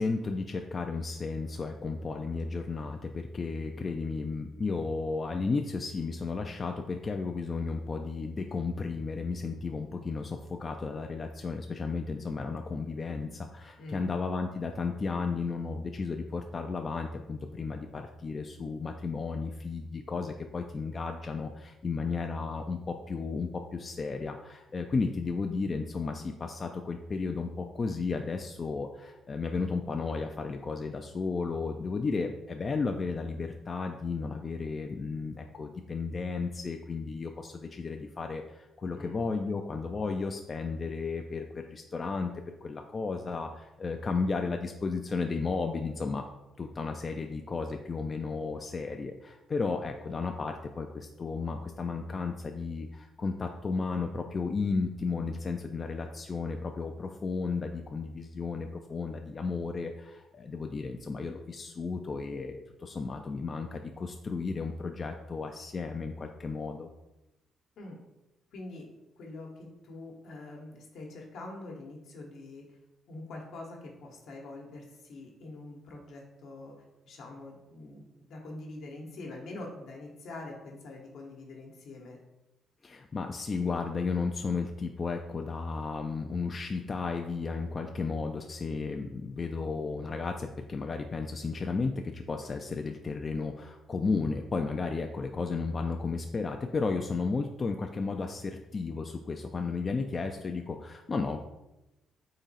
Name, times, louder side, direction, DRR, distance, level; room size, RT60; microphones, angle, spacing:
voice 1, 0.0-42.3 42.6-46.3 46.6-66.9 82.8-101.4, left 4 dB, 35° left, 4 dB, 0.3 m, -33 dB
voice 2, 13.8-14.1 38.9-39.2 67.8-68.0 68.5-68.9 69.2-69.5 69.8-72.8 73.1-76.7 77.1-78.0 78.3-82.2, left 2 dB, 75° left, 0 dB, 1.0 m, -44 dB
3.8 x 2.9 x 4.1 m, 0.97 s
cardioid pair, 90°, 0 cm